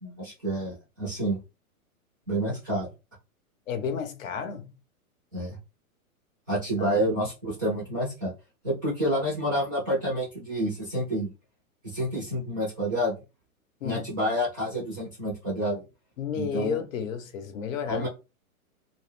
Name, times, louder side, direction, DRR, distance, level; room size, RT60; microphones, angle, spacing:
voice 1, 0.0-1.4 2.3-2.9 5.3-5.6 6.5-8.3 8.6-11.3 11.8-13.2 13.8-15.8 16.3-16.8 17.9-18.1, equal, 15° right, 0.4 m, -28 dB
voice 2, 3.7-4.7 6.8-7.0 13.8-14.1 16.2-18.1, left 7 dB, 60° left, 0.7 m, -32 dB
2.2 x 2.0 x 3.1 m
hypercardioid pair, 155°, 44 cm